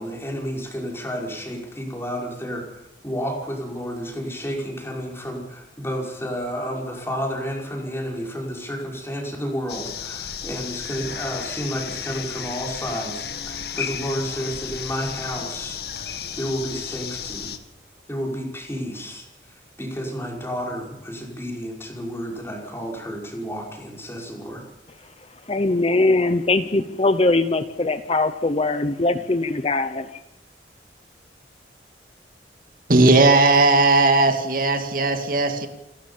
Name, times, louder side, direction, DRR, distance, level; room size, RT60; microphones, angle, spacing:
voice 1, 0.0-2.6 3.0-17.5 18.1-24.6, equal, 15° left, 0 dB, 5.4 m, -31 dB
sound 1, 9.7-17.6, left 7 dB, 60° left, 2.0 m, -33 dB
voice 2, 25.5-30.2, left 2 dB, 35° left, 10 dB, 0.8 m, -21 dB
voice 3, 32.9-35.7, right 2 dB, 50° right, 6 dB, 2.3 m, -17 dB
29.0 x 13.5 x 7.2 m, 0.93 s
head